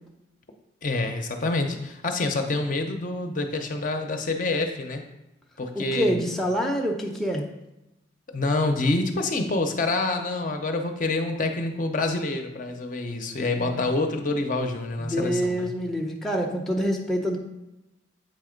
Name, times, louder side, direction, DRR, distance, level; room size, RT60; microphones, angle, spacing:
voice 1, 0.8-5.0 5.6-6.2 8.3-15.7, left 2 dB, 45° left, 4 dB, 0.7 m, -27 dB
voice 2, 5.7-7.5 13.6-13.8 15.0-17.4, equal, ahead, -1 dB, 0.6 m, -26 dB
8.3 x 3.3 x 5.1 m, 0.94 s
head